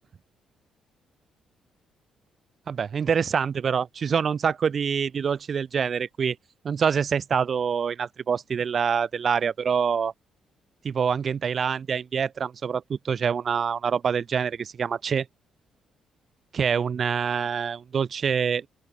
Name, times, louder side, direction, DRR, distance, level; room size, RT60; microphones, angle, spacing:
voice 1, 2.7-6.4 6.6-10.1 10.8-15.3 16.5-18.7, right 6 dB, 50° right, 2.4 m, -25 dB
open air
cardioid pair, 90°, 0 cm